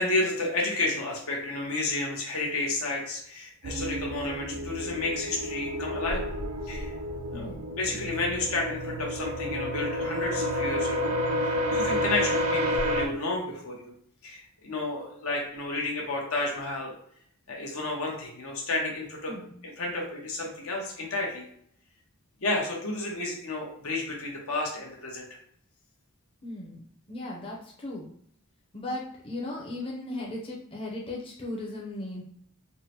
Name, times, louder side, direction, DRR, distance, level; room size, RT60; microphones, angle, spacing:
voice 1, 0.0-6.3 6.7-6.9 7.3-11.1 11.7-13.9 14.2-16.9 17.5-19.3 19.8-21.4 22.4-25.3, left 2 dB, 80° left, -1 dB, 0.9 m, -31 dB
sound 1, 3.6-13.1, equal, 80° right, 0.4 m, -30 dB
voice 2, 7.3-7.7 19.3-19.5 26.4-28.1 28.7-32.2, left 2 dB, 25° left, -4 dB, 0.6 m, -37 dB
3.6 x 2.1 x 2.9 m, 0.65 s
head